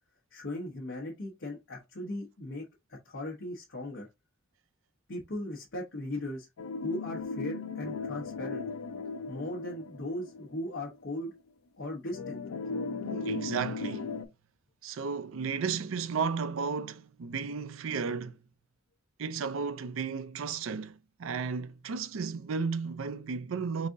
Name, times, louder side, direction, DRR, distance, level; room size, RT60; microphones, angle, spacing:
voice 1, 0.3-4.1 5.1-6.5 6.8-8.7 9.3-11.3 11.8-12.4, left 1 dB, 60° left, 1.0 m, -38 dB
sound 1, 6.6-10.9 11.3-11.4 12.1-14.2, left 4 dB, 85° left, 0.4 m, -37 dB
voice 2, 13.0-14.1 14.8-18.4 19.2-23.9, right 5 dB, 70° right, 0.5 m, -34 dB
4.0 x 3.6 x 2.6 m
head